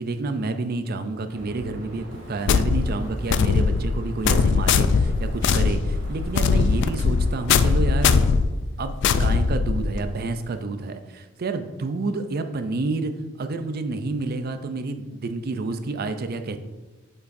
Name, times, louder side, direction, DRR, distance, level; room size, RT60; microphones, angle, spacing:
voice 1, 0.0-8.3 8.8-13.1 13.4-16.6, right 3 dB, 45° right, 9 dB, 0.4 m, -29 dB
sound 1, 1.3-8.3, equal, 70° right, 1.7 m, -40 dB
sound 2, 2.5-10.1, left 5 dB, 55° left, 0.3 m, -21 dB
7.9 x 5.7 x 2.6 m, 1.2 s
head